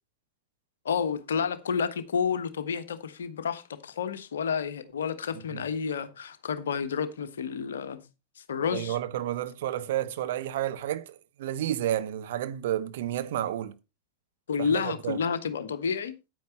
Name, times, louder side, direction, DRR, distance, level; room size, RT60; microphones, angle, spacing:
voice 1, 0.8-8.0 8.4-9.0 14.5-16.1, left 6 dB, 65° left, 1.2 m, -30 dB
voice 2, 8.6-13.7 14.6-15.2, right 12 dB, 55° right, 1.0 m, -31 dB
9.5 x 9.3 x 4.2 m
figure-of-eight pair, 90°, 0 cm